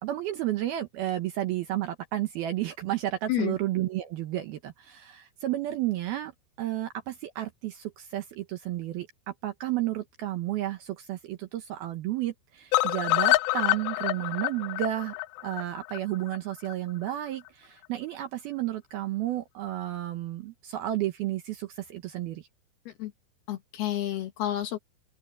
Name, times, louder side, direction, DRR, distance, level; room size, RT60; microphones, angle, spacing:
voice 1, 0.0-6.3 6.6-15.2 15.4-22.5, right 14 dB, 70° right, 2.5 m, -32 dB
sound 1, 12.7-16.7 17.1-17.2 17.5-17.6 17.8-17.9, left 20 dB, 85° left, 2.5 m, -27 dB
voice 2, 23.5-24.8, left 13 dB, 65° left, 3.0 m, -30 dB
omnidirectional pair, 5.5 m